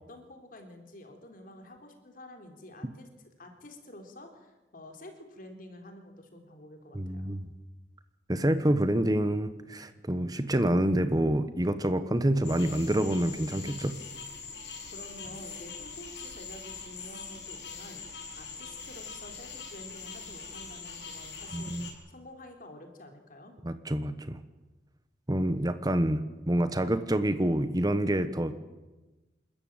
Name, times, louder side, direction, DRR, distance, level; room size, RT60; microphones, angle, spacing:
voice 1, 0.0-3.1 3.4-7.3 14.9-18.0 18.4-23.5, left 1 dB, 50° left, 4 dB, 3.7 m, -49 dB
voice 2, 6.9-7.5 8.3-14.0 21.5-21.9 23.6-24.4 25.3-28.5, right 1 dB, 20° right, 11 dB, 1.1 m, -27 dB
sound 1, 12.4-21.9, left 5 dB, 70° left, 6.0 m, -43 dB
28.0 x 14.0 x 9.0 m, 1.1 s
head